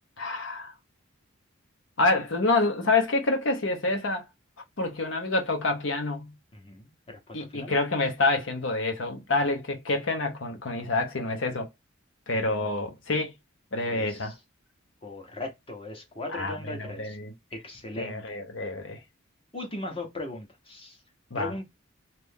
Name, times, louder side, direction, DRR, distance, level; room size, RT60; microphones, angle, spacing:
voice 1, 0.2-0.7 2.0-4.2 4.8-6.3 7.3-11.7 12.3-13.3 13.7-14.3 16.3-17.3 18.0-19.0 21.3-21.5, left 2 dB, 65° left, 0.9 m, -27 dB
voice 2, 6.5-7.8 13.8-14.3 15.0-17.2 17.5-18.2 19.5-21.0 21.3-21.6, left 2 dB, 25° left, 0.9 m, -38 dB
2.8 x 2.5 x 3.5 m
head